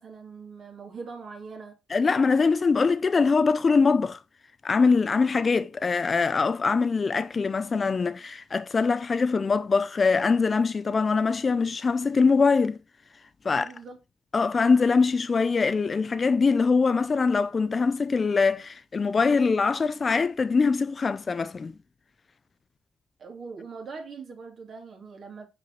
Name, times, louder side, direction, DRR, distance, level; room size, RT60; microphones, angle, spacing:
voice 1, 0.0-1.7 13.4-14.0 23.2-25.5, right 4 dB, 55° right, 2.2 m, -41 dB
voice 2, 1.9-4.2 4.6-12.8 13.4-13.7 14.3-21.7, left 4 dB, 35° left, 0.5 m, -23 dB
5.7 x 4.9 x 3.9 m
cardioid pair, 90°, 0 cm